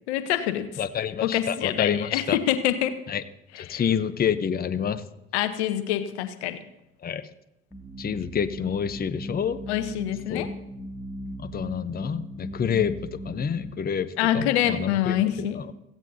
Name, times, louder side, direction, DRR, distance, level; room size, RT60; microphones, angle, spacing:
voice 1, 0.1-0.7 1.2-2.9 3.7-3.8 5.3-6.6 9.7-10.5 14.2-15.6, left 11 dB, 75° left, 11 dB, 1.0 m, -25 dB
voice 2, 0.8-2.4 3.1-3.2 3.6-5.0 7.0-7.3 8.0-9.6 10.3-10.5 11.4-15.7, left 8 dB, 30° left, 14 dB, 0.8 m, -28 dB
sound 1, 7.7-13.7, equal, ahead, 2.1 m, -38 dB
16.5 x 15.5 x 2.7 m, 0.88 s
hypercardioid pair, 60°, 33 cm